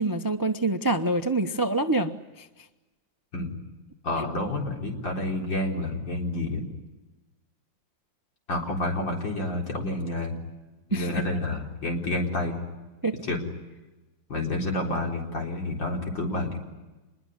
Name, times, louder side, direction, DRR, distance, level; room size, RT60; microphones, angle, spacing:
voice 1, 0.0-2.5 10.9-11.2 13.0-13.1, right 2 dB, 20° right, 9 dB, 0.6 m, -26 dB
voice 2, 4.0-6.6 8.5-10.4 10.9-12.6 13.2-13.4 14.3-16.6, left 2 dB, 70° left, 1 dB, 5.0 m, -29 dB
27.0 x 22.0 x 9.8 m, 1.2 s
omnidirectional pair, 2.1 m